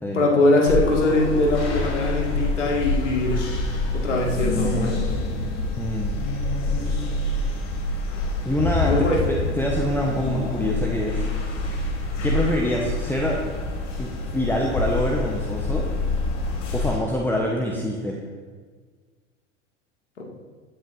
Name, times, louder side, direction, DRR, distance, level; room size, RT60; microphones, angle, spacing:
voice 1, 0.1-3.5 3.9-5.1 8.8-9.2 20.2-20.3, left 2 dB, 75° left, -1 dB, 2.4 m, -22 dB
sound 1, 0.7-17.0, left 2 dB, 45° left, 3.0 m, -26 dB
voice 2, 5.8-6.2 8.4-9.0 9.3-11.3 12.2-13.4 14.0-15.9 16.7-18.2, left 1 dB, 5° left, -2 dB, 1.2 m, -25 dB
16.5 x 10.0 x 2.8 m, 1.5 s
figure-of-eight pair, 75°, 36 cm